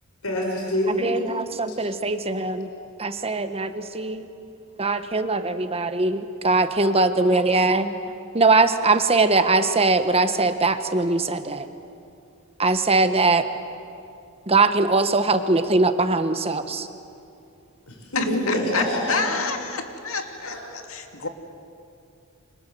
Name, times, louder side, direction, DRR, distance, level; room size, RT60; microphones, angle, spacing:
voice 1, 0.2-1.1 17.9-19.5 20.4-20.6, left 1 dB, 85° left, -1 dB, 5.5 m, -26 dB
voice 2, 1.0-2.7 3.0-4.3 4.8-7.9 8.3-11.7 12.6-13.5 14.5-16.9, right 3 dB, 30° right, 9 dB, 1.3 m, -21 dB
voice 3, 18.1-21.3, left 5 dB, 70° left, 5 dB, 2.5 m, -29 dB
29.5 x 25.5 x 7.7 m, 2.5 s
head